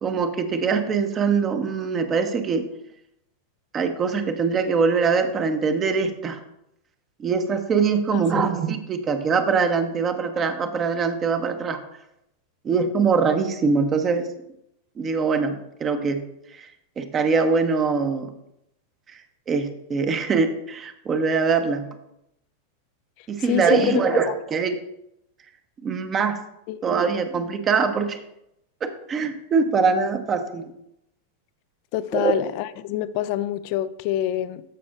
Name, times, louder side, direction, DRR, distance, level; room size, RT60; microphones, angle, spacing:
voice 1, 0.0-2.7 3.7-6.4 7.2-11.8 12.6-14.3 15.0-16.2 16.5-16.7 17.0-18.3 19.5-21.9 23.3-24.8 25.8-26.4 26.8-28.2 28.8-30.7 32.1-32.3, right 5 dB, 25° right, 7 dB, 0.8 m, -23 dB
voice 2, 8.1-8.4 23.4-24.3 26.7-26.8 31.9-34.6, left 13 dB, 45° left, 15 dB, 0.4 m, -26 dB
13.5 x 6.0 x 2.5 m, 0.81 s
figure-of-eight pair, 90°, 0 cm